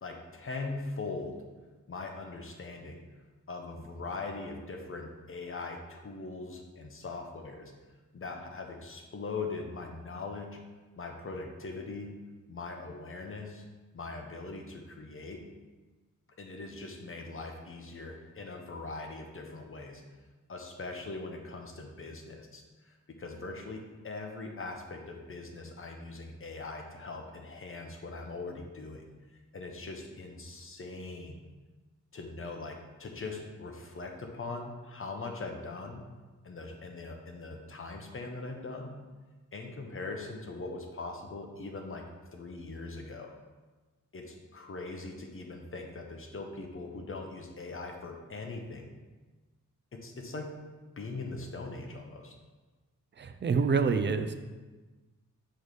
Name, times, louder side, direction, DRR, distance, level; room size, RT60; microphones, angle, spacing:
voice 1, 0.0-1.4 1.9-3.0 3.5-7.7 8.1-10.6 10.9-12.1 12.5-13.6 13.9-15.4 16.4-20.0 20.5-29.1 29.5-31.4 32.1-36.0 36.4-39.0 39.5-43.3 44.1-48.9 49.9-50.6 51.0-52.3, left 3 dB, 40° left, 3 dB, 0.8 m, -41 dB
voice 2, 53.2-54.3, right 5 dB, 35° right, 9 dB, 0.4 m, -27 dB
6.3 x 3.2 x 5.0 m, 1.3 s
wide cardioid pair, 125°, 32 cm